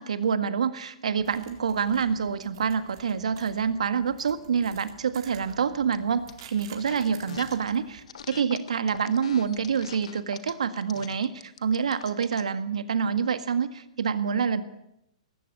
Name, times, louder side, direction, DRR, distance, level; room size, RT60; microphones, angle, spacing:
voice 1, 0.0-14.6, right 6 dB, 80° right, 11 dB, 1.8 m, -27 dB
sound 1, 1.2-8.0, right 8 dB, 50° right, 4.0 m, -50 dB
sound 2, 5.9-6.4 6.8-7.7 8.1-12.5, left 8 dB, 70° left, 1.6 m, -43 dB
19.0 x 16.0 x 8.7 m, 0.81 s
hypercardioid pair, 135°, 4 cm